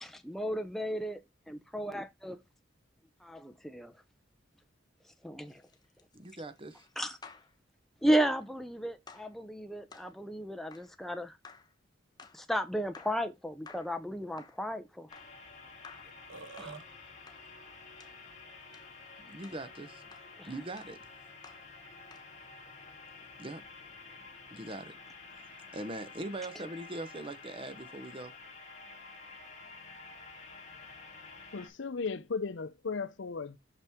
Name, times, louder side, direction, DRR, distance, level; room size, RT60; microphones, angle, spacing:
voice 1, 0.0-1.2 1.5-2.4 3.2-3.9 5.2-5.6 7.0-7.2 8.0-11.4 12.3-15.1 16.6-16.8 20.4-20.5, equal, ahead, 0.5 m, -34 dB
sound 1, 5.4-7.5 8.2-8.5 9.1-9.4 9.9-10.1 10.7-10.9 11.4-11.7 12.2-12.4 12.9-13.2 13.7-14.0 14.4-14.6 15.1-15.4 15.8-16.2 16.6-16.8 17.3-17.5 18.0-18.2 18.7-18.9 19.4-19.6 20.1-20.3 20.8-21.0 21.4-21.7 22.1-22.3, left 5 dB, 20° left, 0.8 m, -54 dB
voice 2, 6.1-6.9 16.7-16.8 19.2-20.0 20.4-21.0 23.4-23.6 24.5-25.0 25.4-25.5 25.7-28.3, right 2 dB, 25° right, 0.8 m, -41 dB
sound 2, 15.1-31.7, left 4 dB, 35° left, 1.8 m, -50 dB
Burping eructation, 16.0-16.8, right 5 dB, 75° right, 0.7 m, -46 dB
voice 3, 31.5-33.6, left 4 dB, 70° left, 0.6 m, -36 dB
6.1 x 5.5 x 3.5 m
head